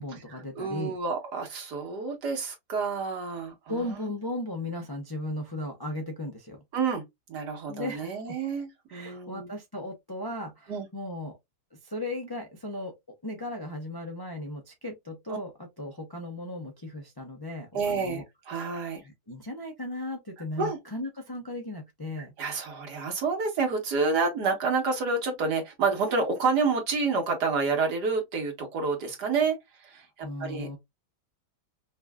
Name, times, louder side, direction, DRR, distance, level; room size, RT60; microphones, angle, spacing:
voice 1, 0.0-0.9 3.7-6.6 7.7-8.4 8.9-11.4 11.8-12.9 13.2-18.2 19.0-22.3 30.2-30.8, left 1 dB, 40° left, 0.3 m, -36 dB
voice 2, 0.6-4.1 6.7-7.0 7.3-9.5 10.7-10.9 15.3-15.4 17.7-19.0 20.6-20.8 22.2-30.8, right 4 dB, 70° right, 1.8 m, -29 dB
5.2 x 2.5 x 2.3 m
omnidirectional pair, 1.8 m